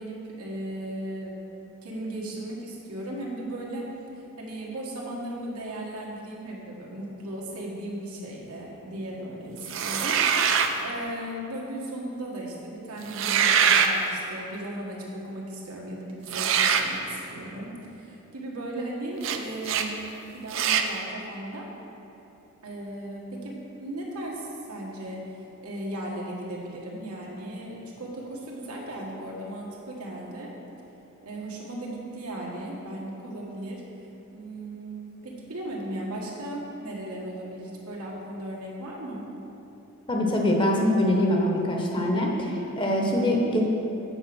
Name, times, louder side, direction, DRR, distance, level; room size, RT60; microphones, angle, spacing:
voice 1, 0.0-3.9 4.4-10.2 10.5-20.0 20.3-21.7 22.6-30.5 31.2-33.8 34.3-39.3, right 1 dB, 90° right, -4 dB, 1.6 m, -36 dB
sound 1, 9.7-10.8 13.0-13.9 16.3-16.9 19.2-19.4 19.6-19.9 20.5-20.9, right 7 dB, 60° right, 0.5 m, -23 dB
voice 2, 40.1-43.6, left 1 dB, 20° left, -1 dB, 0.8 m, -24 dB
7.9 x 5.2 x 6.1 m, 3.0 s
head